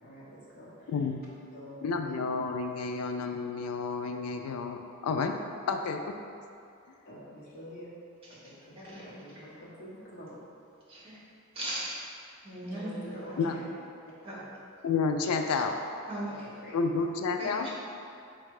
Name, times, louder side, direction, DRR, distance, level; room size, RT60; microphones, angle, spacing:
voice 1, 0.0-1.1 1.5-2.1 7.1-7.9 8.3-10.4 12.6-13.7 14.3-14.4 16.2-17.0, equal, 45° left, -8 dB, 1.0 m, -47 dB
voice 2, 0.9-1.2 1.8-5.4 5.7-6.2 13.4-13.5 14.8-15.7 16.7-17.7, left 4 dB, 90° left, 6 dB, 0.3 m, -30 dB
voice 3, 8.7-9.1 10.9-11.2 11.5-11.9 12.4-13.4 14.2-14.3 16.1-16.3 17.4-17.7, right 1 dB, 25° right, -7 dB, 1.1 m, -38 dB
4.3 x 2.3 x 4.7 m, 2.5 s
head